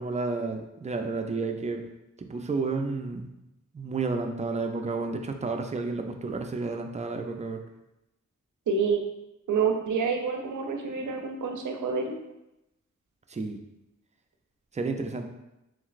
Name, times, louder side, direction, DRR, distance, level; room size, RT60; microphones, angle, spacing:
voice 1, 0.0-1.8 2.2-3.3 3.7-7.6 13.3-13.6 14.7-15.3, right 3 dB, 25° right, 4 dB, 0.3 m, -31 dB
voice 2, 8.7-9.0 9.5-12.2, right 5 dB, 85° right, 3 dB, 0.5 m, -27 dB
3.1 x 3.0 x 2.4 m, 0.91 s
wide cardioid pair, 65°, 30 cm